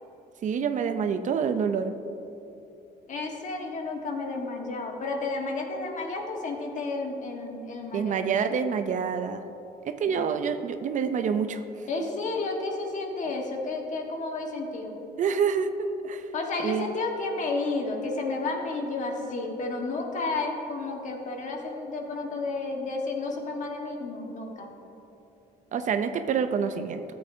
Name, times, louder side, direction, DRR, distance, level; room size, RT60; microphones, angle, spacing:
voice 1, 0.4-1.9 7.9-9.4 9.8-12.1 15.2-16.3 16.6-16.9 25.7-27.0, right 6 dB, 50° right, 9 dB, 0.5 m, -27 dB
voice 2, 3.1-8.3 10.1-10.2 11.9-15.0 16.3-24.7, left 3 dB, 45° left, 1 dB, 1.4 m, -32 dB
13.5 x 7.8 x 2.7 m, 3.0 s
cardioid pair, 110°, 17 cm